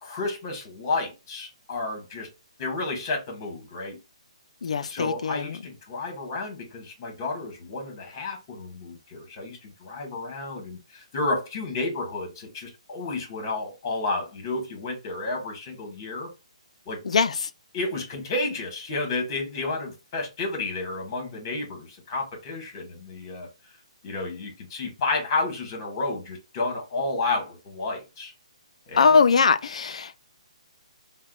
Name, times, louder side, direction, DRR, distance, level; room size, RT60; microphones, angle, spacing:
voice 1, 0.0-2.3 2.6-4.0 4.8-16.3 16.8-17.0 17.7-23.5 24.0-28.3 28.9-29.2, left 3 dB, 30° left, 1.3 m, -31 dB
voice 2, 4.6-5.5 17.0-17.3 29.0-30.2, left 5 dB, 70° left, 0.4 m, -21 dB
4.7 x 2.2 x 2.3 m
hypercardioid pair, 165°, 4 cm